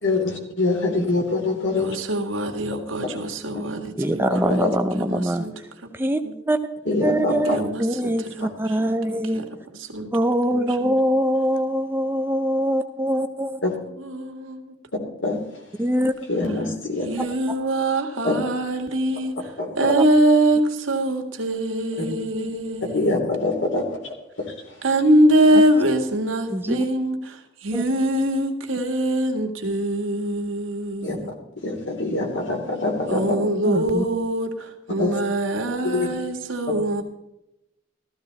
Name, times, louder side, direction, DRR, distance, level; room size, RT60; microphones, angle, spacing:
voice 1, 0.0-1.9 3.5-3.6 4.6-4.7 6.9-7.6 13.6-13.7 15.2-15.4 16.3-17.1 18.2-18.4 19.6-19.9 22.9-24.1 31.0-31.2 31.6-33.2 35.0-35.1 35.8-36.1, left 2 dB, 65° left, 3.0 m, -24 dB
voice 2, 1.8-4.6 5.1-5.5 6.2-6.3 7.5-9.0 9.3-9.4 9.7-10.1 10.5-11.0 14.0-14.8 17.0-23.2 24.8-31.3 33.1-37.0, right 1 dB, 85° right, 1.9 m, -23 dB
voice 3, 4.0-5.7 5.9-6.2 6.5-6.6 7.0-9.5 10.1-13.6 15.8-16.1 20.0-20.1 25.5-25.6 26.5-26.9 27.7-27.8 33.6-34.0, equal, 10° right, 0.6 m, -23 dB
14.5 x 14.0 x 4.0 m
head